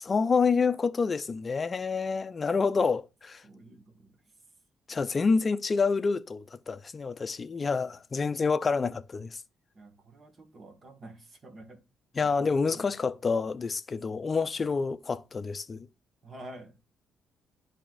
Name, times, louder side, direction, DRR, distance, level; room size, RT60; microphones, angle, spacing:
voice 1, 0.1-3.4 4.9-9.4 12.1-15.9, left 5 dB, 35° left, 0.6 m, -28 dB
voice 2, 3.4-4.1 9.7-11.8 12.2-12.3 12.7-13.1 16.2-16.9, right 1 dB, 40° right, 1.9 m, -49 dB
11.5 x 4.1 x 2.6 m
cardioid pair, 90°, 0 cm